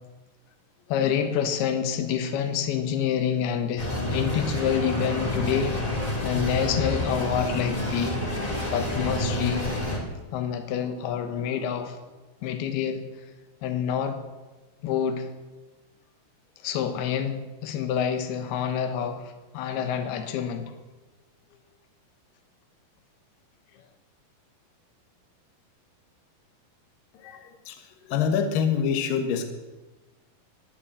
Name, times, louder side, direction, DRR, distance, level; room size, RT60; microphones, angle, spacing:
voice 1, 0.9-5.7 6.2-8.2 8.7-9.7 10.3-12.0 12.4-13.0 13.6-14.2 14.8-15.3 16.6-20.7, left 8 dB, 85° left, 8 dB, 3.2 m, -27 dB
sound 1, 3.8-10.0, left 1 dB, 15° left, 1.9 m, -28 dB
voice 2, 27.1-29.5, left 7 dB, 70° left, 6 dB, 2.8 m, -26 dB
14.5 x 10.5 x 8.9 m, 1.2 s
omnidirectional pair, 4.4 m